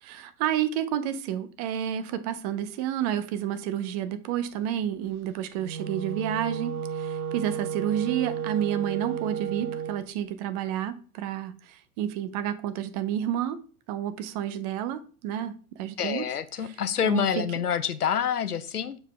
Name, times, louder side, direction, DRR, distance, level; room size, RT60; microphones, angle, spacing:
voice 1, 0.0-13.6 13.9-16.3 16.6-17.4, right 10 dB, 30° right, 12 dB, 0.5 m, -30 dB
Wind instrument woodwind instrument, 5.5-10.0, right 8 dB, 70° right, 0.8 m, -33 dB
voice 2, 16.0-19.0, left 8 dB, 85° left, 13 dB, 0.7 m, -27 dB
6.7 x 4.6 x 3.3 m, 0.40 s
figure-of-eight pair, 100°, 45 cm